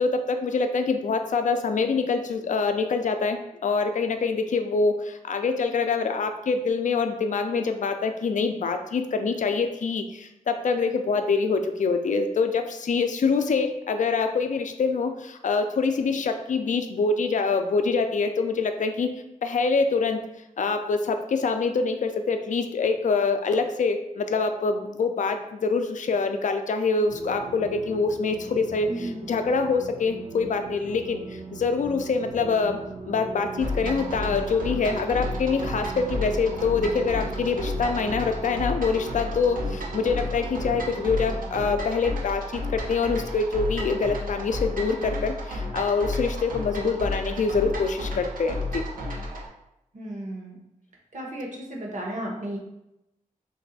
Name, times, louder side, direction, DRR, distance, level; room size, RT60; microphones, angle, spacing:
voice 1, 0.0-19.1 19.4-20.2 20.6-32.8 33.1-48.8, left 4 dB, 65° left, 7 dB, 0.4 m, -25 dB
sound 1, 27.1-41.9, right 4 dB, 35° right, 0.5 m, -39 dB
voice 2, 28.9-29.2 49.9-50.6 51.1-52.6, right 1 dB, 60° right, -2 dB, 0.9 m, -34 dB
sound 2, 33.6-49.5, left 1 dB, 85° right, 0.7 m, -32 dB
3.1 x 2.6 x 4.0 m, 0.87 s
wide cardioid pair, 105°, 14 cm